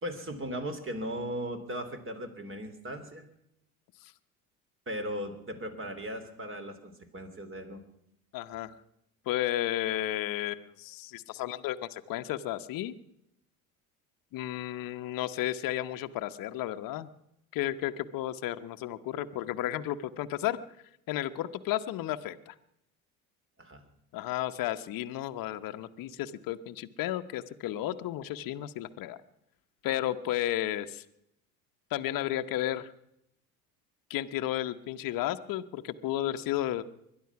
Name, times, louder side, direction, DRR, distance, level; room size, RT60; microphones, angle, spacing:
voice 1, 0.0-3.2 4.9-7.8 23.6-23.8, equal, 30° right, 8 dB, 2.9 m, -37 dB
voice 2, 8.3-8.7 9.3-12.9 14.3-17.1 17.5-20.6 21.1-22.5 24.1-29.2 29.8-31.0 31.9-32.9 34.1-36.8, left 13 dB, 50° left, 9 dB, 1.0 m, -33 dB
21.5 x 11.0 x 5.9 m, 0.78 s
hypercardioid pair, 75°, 43 cm